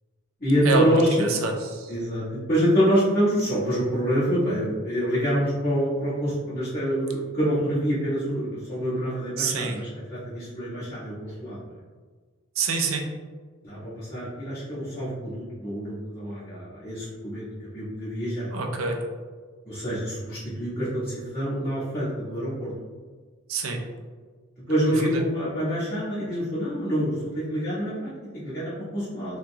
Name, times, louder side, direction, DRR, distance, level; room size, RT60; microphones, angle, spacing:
voice 1, 0.4-1.3 1.9-11.7 13.6-17.4 17.7-18.5 19.6-22.7 24.6-29.4, equal, 45° left, -13 dB, 1.5 m, -26 dB
voice 2, 1.2-1.9 9.4-9.8 12.6-13.1 18.5-19.0 23.5-23.8 25.1-25.2, right 4 dB, 90° right, 2 dB, 0.6 m, -26 dB
3.8 x 3.2 x 2.3 m, 1.5 s
head